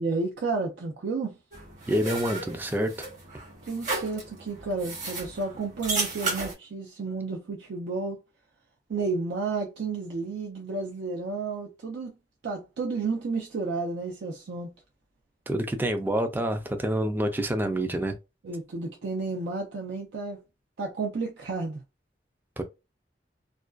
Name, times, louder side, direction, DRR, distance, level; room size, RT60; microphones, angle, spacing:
voice 1, 0.0-1.4 3.6-8.2 8.9-12.1 12.4-14.7 18.4-20.4 20.8-21.8, right 3 dB, 80° right, 0.5 m, -31 dB
sound 1, 1.5-6.5, right 3 dB, 45° right, 1.1 m, -34 dB
voice 2, 1.9-2.9 15.5-18.2 22.6-22.7, right 1 dB, 10° right, 0.3 m, -27 dB
2.4 x 2.2 x 2.3 m
head